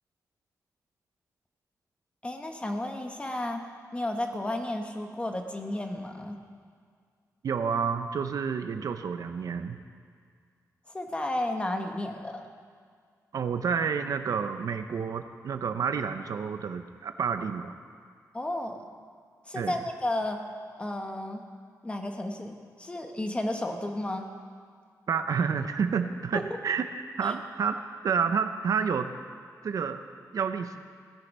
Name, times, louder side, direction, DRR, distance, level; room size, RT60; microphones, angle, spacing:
voice 1, 2.2-6.4 10.9-12.5 18.3-18.8 19.4-20.4 20.8-21.4 21.8-24.3 26.3-26.4 27.2-27.3, left 1 dB, 20° left, 4 dB, 1.2 m, -33 dB
voice 2, 7.4-9.8 13.3-17.7 19.5-19.8 25.1-26.9 27.2-29.1 29.6-30.0 30.3-30.8, right 6 dB, 70° right, 8 dB, 0.7 m, -29 dB
17.5 x 10.5 x 5.4 m, 2.1 s
wide cardioid pair, 145°, 6 cm